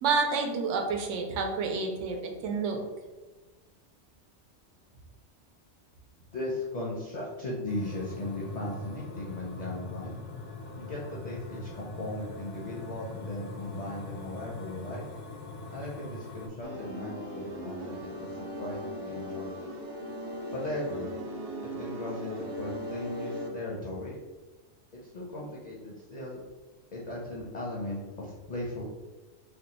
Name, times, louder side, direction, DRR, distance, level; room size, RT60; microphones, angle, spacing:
voice 1, 0.0-2.8, right 4 dB, 85° right, 3 dB, 0.9 m, -29 dB
voice 2, 6.3-10.1 10.8-15.0 15.7-19.6 20.5-21.1 21.8-24.2 25.0-26.4 26.9-28.8, left 1 dB, 55° left, -4 dB, 0.5 m, -37 dB
sound 1, 7.7-16.5, left 2 dB, 90° left, 1.0 m, -41 dB
sound 2, 16.6-23.5, equal, 55° right, 0.5 m, -38 dB
2.6 x 2.2 x 3.8 m, 1.2 s
omnidirectional pair, 1.2 m